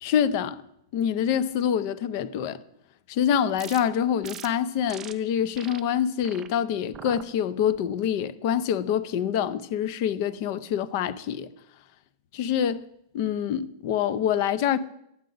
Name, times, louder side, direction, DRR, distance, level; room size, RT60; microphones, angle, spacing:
voice 1, 0.0-0.6 0.9-2.6 3.1-11.5 12.3-12.8 13.1-14.8, left 9 dB, 40° left, 0.5 m, -26 dB
sound 1, 3.6-3.8 4.2-4.5 4.9-5.1 5.6-5.8 6.2-6.5 6.9-7.2 7.7-8.1, right 9 dB, 20° right, 0.4 m, -42 dB
9.3 x 7.5 x 3.9 m
supercardioid pair, 165°, 2 cm